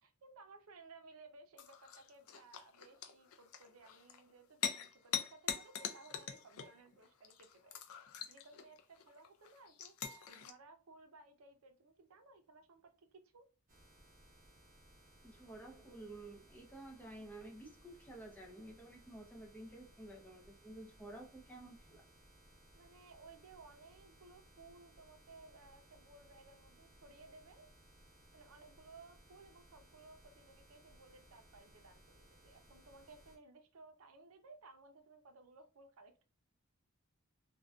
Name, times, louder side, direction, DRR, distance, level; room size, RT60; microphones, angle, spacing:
voice 1, 0.0-7.8 8.3-9.9 10.3-13.4 22.7-27.7 28.3-36.1, right 3 dB, 85° right, 6 dB, 0.5 m, -59 dB
sound 1, 1.6-10.5, left 8 dB, 85° left, 0.4 m, -44 dB
sound 2, 13.7-33.4, right 1 dB, 40° right, 0.8 m, -64 dB
voice 2, 15.2-22.0, right 1 dB, 10° left, 1 dB, 0.5 m, -52 dB
2.5 x 2.1 x 2.3 m, 0.34 s
head